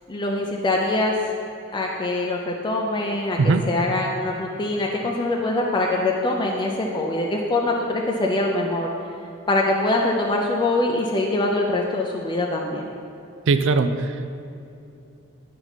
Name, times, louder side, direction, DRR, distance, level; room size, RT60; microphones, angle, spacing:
voice 1, 0.1-1.1 1.7-8.9 9.5-12.9, left 2 dB, 20° left, -1 dB, 0.5 m, -23 dB
voice 2, 13.5-14.3, right 4 dB, 65° right, 10 dB, 0.4 m, -20 dB
10.5 x 4.6 x 4.0 m, 2.7 s
head